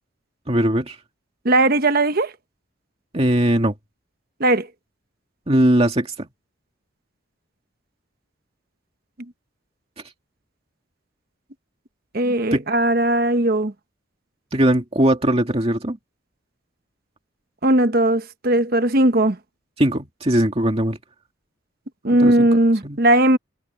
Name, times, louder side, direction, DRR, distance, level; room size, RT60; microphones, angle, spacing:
voice 1, 0.5-1.0 3.1-3.7 5.5-6.3 12.2-12.7 14.5-16.0 19.8-21.0 22.1-22.5 22.8-23.0, right 1 dB, 30° right, 2.3 m, -20 dB
voice 2, 1.4-2.3 4.4-4.7 12.1-13.7 17.6-19.4 22.0-23.4, right 1 dB, 45° right, 1.1 m, -18 dB
head